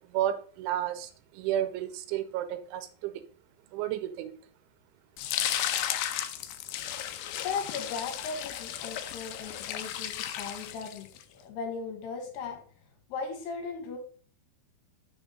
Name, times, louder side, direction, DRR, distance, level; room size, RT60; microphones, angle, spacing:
voice 1, 0.0-3.2 3.7-4.3, right 11 dB, 90° right, 10 dB, 3.1 m, -32 dB
sound 1, 5.2-11.2, left 11 dB, 90° left, 2.2 m, -34 dB
voice 2, 7.4-11.1 11.4-12.6 13.1-14.0, left 5 dB, 70° left, 4 dB, 3.2 m, -37 dB
6.9 x 6.3 x 5.3 m, 0.43 s
omnidirectional pair, 5.4 m